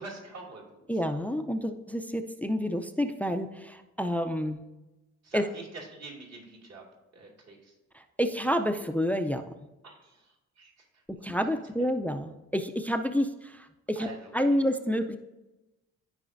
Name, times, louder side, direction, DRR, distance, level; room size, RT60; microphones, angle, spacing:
voice 1, 0.0-0.9 5.2-6.9 7.1-7.8 9.8-11.5 13.9-14.6, right 3 dB, 60° right, -2 dB, 2.4 m, -46 dB
voice 2, 0.9-4.6 5.3-5.4 7.9-9.5 11.2-14.1 14.3-15.2, equal, 5° left, 8 dB, 0.4 m, -29 dB
13.0 x 4.8 x 2.6 m, 1.0 s
cardioid pair, 90°, 30 cm